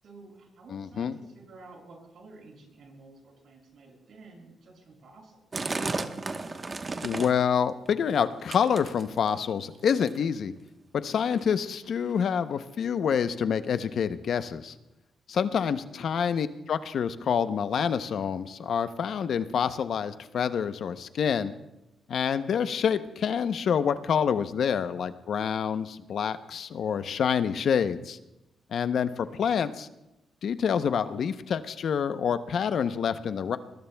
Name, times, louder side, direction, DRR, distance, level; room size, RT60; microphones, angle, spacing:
voice 1, 0.0-5.7 29.2-29.4, right 3 dB, 65° right, 0 dB, 6.7 m, -51 dB
voice 2, 0.7-1.1 7.0-10.5 10.9-14.7 15.3-21.5 22.1-28.2 28.7-29.9 30.4-33.6, left 7 dB, 65° left, 11 dB, 0.7 m, -27 dB
sound 1, 5.5-7.5 7.8-8.2 8.5-9.4 9.9-10.2 11.0-11.1 11.3-11.4 12.0-12.1 12.8-12.9, right 3 dB, 35° right, 1.1 m, -34 dB
23.5 x 20.5 x 2.3 m, 0.93 s
cardioid pair, 85°, 0 cm